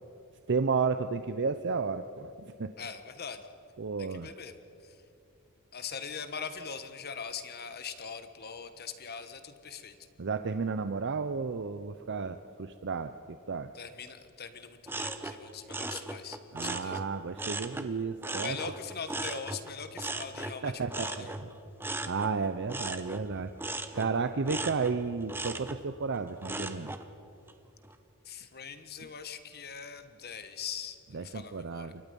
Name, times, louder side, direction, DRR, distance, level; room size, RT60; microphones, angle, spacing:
voice 1, 0.5-2.7 3.8-4.3 10.2-13.7 16.5-18.6 20.6-21.5 22.1-23.5 23.9-26.9 31.1-32.0, right 4 dB, 55° right, 10 dB, 0.6 m, -32 dB
voice 2, 2.8-3.5 4.0-4.6 4.8-5.0 5.7-10.0 13.7-17.0 18.3-21.3 28.2-31.9, left 6 dB, 45° left, 9 dB, 1.4 m, -42 dB
sound 1, 14.9-17.9 18.2-27.1 27.5-27.9, right 2 dB, 10° right, 0.9 m, -38 dB
28.5 x 23.5 x 5.4 m, 2.7 s
head